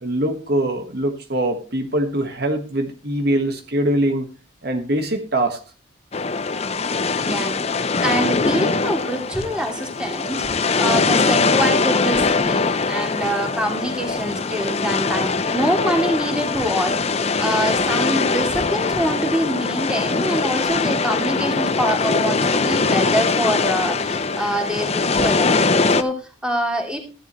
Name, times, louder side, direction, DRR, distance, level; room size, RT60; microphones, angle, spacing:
voice 1, 0.0-4.3 4.6-5.6, right 1 dB, 55° right, 1.5 m, -22 dB
sound 1, 6.1-26.0, left 4 dB, 30° left, 0.7 m, -21 dB
voice 2, 7.2-27.0, equal, 5° right, 2.7 m, -25 dB
14.0 x 10.5 x 3.1 m
head